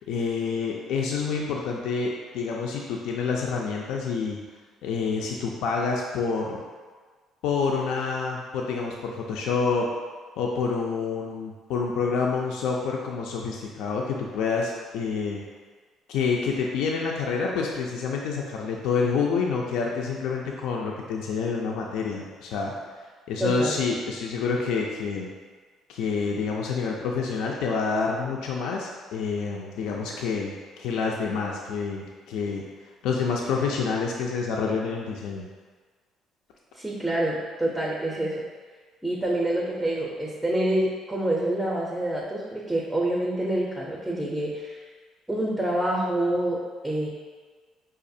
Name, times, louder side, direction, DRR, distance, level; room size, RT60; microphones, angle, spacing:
voice 1, 0.1-4.4 4.8-6.6 7.4-9.9 10.4-15.4 16.1-22.7 23.3-25.3 25.9-32.6 33.0-35.5, left 5 dB, 80° left, -1 dB, 0.4 m, -28 dB
voice 2, 23.4-23.8 36.7-38.4 39.0-44.9 45.3-47.1, right 1 dB, 5° right, -4 dB, 0.5 m, -27 dB
4.9 x 2.3 x 2.6 m, 1.5 s
cardioid pair, 125°, 0 cm